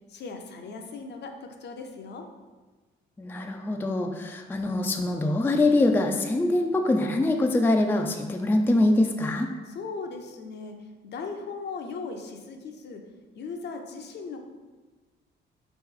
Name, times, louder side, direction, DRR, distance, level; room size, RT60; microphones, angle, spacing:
voice 1, 0.1-2.3 9.7-13.0 13.4-14.4, left 4 dB, 60° left, 4 dB, 0.6 m, -38 dB
voice 2, 3.2-9.5, left 2 dB, 10° left, 3 dB, 0.3 m, -24 dB
4.3 x 3.0 x 3.7 m, 1.3 s
cardioid pair, 90°, 20 cm